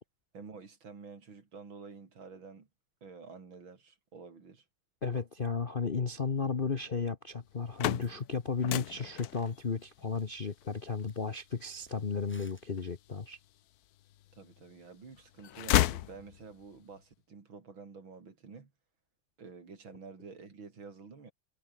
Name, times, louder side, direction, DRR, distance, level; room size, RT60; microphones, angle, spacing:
voice 1, 0.3-2.7 3.0-4.6 14.3-18.7 19.4-21.3, right 5 dB, 65° right, 4.0 m, -49 dB
voice 2, 5.0-13.4, left 5 dB, 35° left, 0.9 m, -34 dB
sound 1, 7.5-13.4 14.0-14.8 15.1-16.7, left 13 dB, 75° left, 0.8 m, -34 dB
sound 2, 7.7-8.0 8.3-12.9, equal, 5° left, 5.1 m, -64 dB
omnidirectional pair, 2.3 m